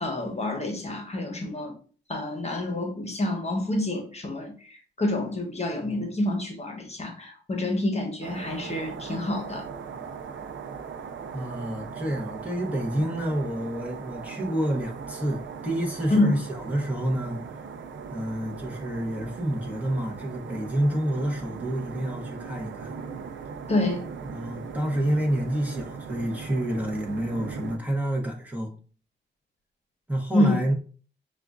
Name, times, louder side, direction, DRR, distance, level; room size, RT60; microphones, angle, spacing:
voice 1, 0.0-1.7 2.1-9.6 16.1-16.3 23.7-24.0 30.3-30.6, left 1 dB, 35° left, 3 dB, 1.0 m, -27 dB
sound 1, 8.2-27.8, right 6 dB, 80° right, 0.5 m, -39 dB
voice 2, 11.3-17.4 18.1-22.9 24.2-28.7 30.1-30.7, right 1 dB, 10° right, -1 dB, 1.0 m, -29 dB
6.6 x 2.4 x 2.4 m, 0.41 s
cardioid pair, 80°, 19 cm